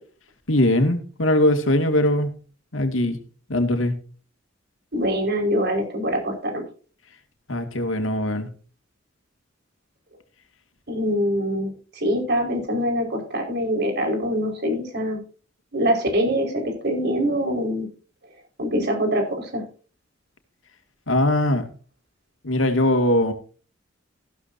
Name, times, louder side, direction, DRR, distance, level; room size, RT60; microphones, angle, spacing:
voice 1, 0.5-2.3 2.7-3.2 3.5-3.9 7.5-8.5 21.1-21.7 22.4-23.3, left 1 dB, 85° left, 6 dB, 2.3 m, -21 dB
voice 2, 4.9-6.6 10.9-15.2 15.7-17.9 18.6-19.6, equal, 60° right, 3 dB, 5.2 m, -24 dB
15.0 x 12.5 x 2.8 m, 0.38 s
head